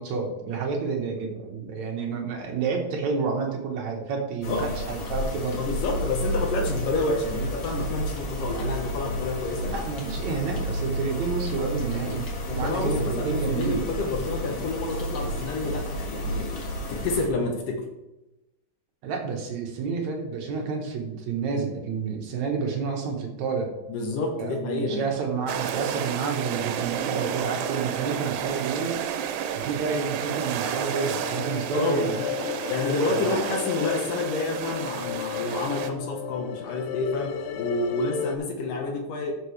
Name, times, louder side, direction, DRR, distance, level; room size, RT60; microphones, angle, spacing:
voice 1, 0.0-5.6 9.6-12.3 12.5-14.0 19.0-23.7 24.4-29.0 29.5-32.2 33.1-33.3, right 5 dB, 60° right, 1 dB, 2.2 m, -29 dB
sound 1, 4.4-17.3, equal, 45° left, 1.7 m, -31 dB
voice 2, 5.5-9.8 12.4-16.6 16.9-17.8 23.9-25.1 31.7-32.3 32.7-39.3, left 3 dB, 65° left, 2 dB, 2.6 m, -29 dB
sound 2, 25.5-35.9, right 8 dB, 85° right, 2.9 m, -31 dB
sound 3, 30.9-38.4, left 10 dB, 85° left, 2.6 m, -34 dB
13.5 x 7.2 x 3.3 m, 0.98 s
omnidirectional pair, 4.7 m